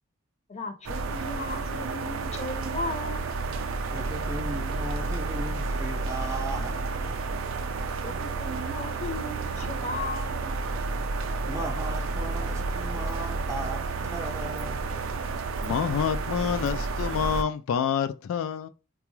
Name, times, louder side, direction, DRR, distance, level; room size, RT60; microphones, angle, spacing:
voice 1, 0.5-3.3 8.0-10.5, left 2 dB, 35° left, 0.6 m, -36 dB
sound 1, 0.9-17.4, right 3 dB, 75° right, 0.4 m, -31 dB
voice 2, 3.9-7.3 11.5-15.0, right 1 dB, 15° right, 0.4 m, -37 dB
voice 3, 15.6-18.7, left 7 dB, 75° left, 0.3 m, -27 dB
3.8 x 2.3 x 3.0 m
head